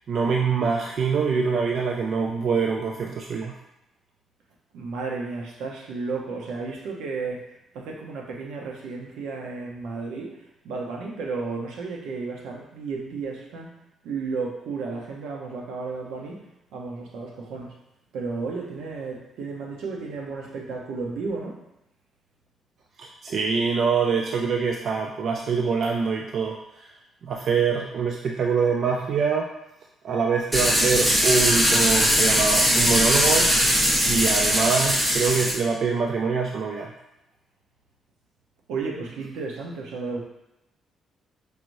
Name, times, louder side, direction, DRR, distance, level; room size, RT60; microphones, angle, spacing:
voice 1, 0.1-3.5 23.0-26.9 27.2-29.5 30.0-33.5 34.0-36.9, right 5 dB, 60° right, 1 dB, 0.3 m, -24 dB
voice 2, 4.7-7.4 7.7-13.7 14.0-16.4 16.7-17.7 18.1-21.6 38.7-40.2, right 4 dB, 85° right, 0 dB, 0.8 m, -33 dB
sound 1, 30.5-35.5, equal, 15° right, 1.1 m, -20 dB
4.8 x 3.0 x 2.6 m, 0.88 s
cardioid pair, 90°, 0 cm